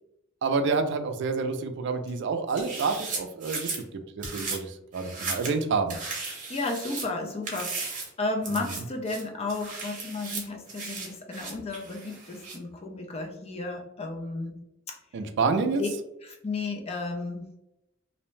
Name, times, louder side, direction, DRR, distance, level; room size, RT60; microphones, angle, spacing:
voice 1, 0.4-3.7 4.2-6.0 8.5-8.7 15.1-15.8, right 4 dB, 60° right, 8 dB, 0.3 m, -28 dB
sound 1, 2.5-3.8 4.2-4.6 4.9-5.6 5.9-7.1 7.4-8.1 8.4-8.8 9.1-12.6, right 4 dB, 40° right, 0.8 m, -36 dB
voice 2, 6.5-14.5 14.9-15.0 15.8-15.9 16.2-17.4, left 3 dB, 30° left, 3 dB, 0.4 m, -33 dB
2.6 x 2.1 x 3.1 m, 0.84 s
head